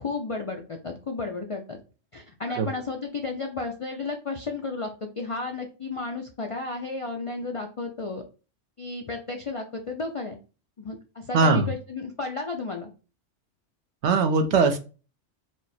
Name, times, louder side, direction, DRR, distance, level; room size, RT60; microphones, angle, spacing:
voice 1, 0.0-1.8 2.1-4.9 5.2-8.2 8.8-10.4 10.8-12.9, left 3 dB, 55° left, 3 dB, 0.3 m, -33 dB
voice 2, 11.3-11.7 14.0-14.8, right 4 dB, 70° right, 7 dB, 1.0 m, -20 dB
4.8 x 2.0 x 4.1 m, 0.34 s
omnidirectional pair, 1.3 m